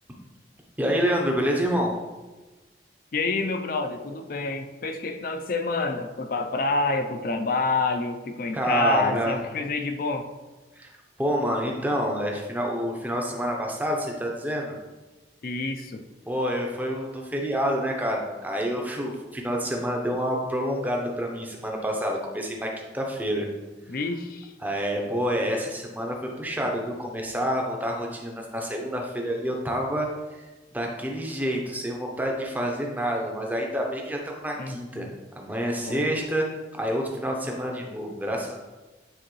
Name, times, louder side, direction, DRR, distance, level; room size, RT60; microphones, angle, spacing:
voice 1, 0.8-1.9 8.5-9.3 10.7-10.9 11.2-14.7 16.3-22.7 22.9-23.5 24.6-30.1 30.7-35.1 35.4-38.6, equal, 10° right, 0 dB, 0.7 m, -28 dB
voice 2, 3.1-10.3 15.4-16.0 23.9-24.5 34.6-35.2 35.8-36.1, left 3 dB, 50° left, 6 dB, 0.5 m, -28 dB
9.0 x 3.7 x 3.1 m, 1.2 s
head